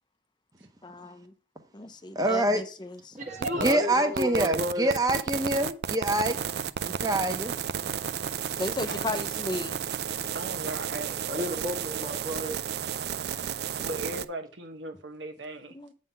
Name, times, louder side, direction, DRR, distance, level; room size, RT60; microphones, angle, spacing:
voice 1, 0.8-1.2 1.7-3.2 8.5-9.7 15.7-15.9, left 2 dB, 25° left, 0.6 m, -35 dB
voice 2, 2.2-2.6 3.6-6.4 6.9-7.5, right 1 dB, 20° right, 0.9 m, -25 dB
voice 3, 3.2-4.9 11.3-12.6 12.9-13.0, equal, 40° right, 1.4 m, -32 dB
sound 1, 3.4-3.7 4.2-14.3, right 8 dB, 60° right, 0.3 m, -32 dB
voice 4, 8.9-9.2 10.3-11.2 13.8-15.7, right 2 dB, 85° right, 1.4 m, -37 dB
8.4 x 3.7 x 5.7 m
head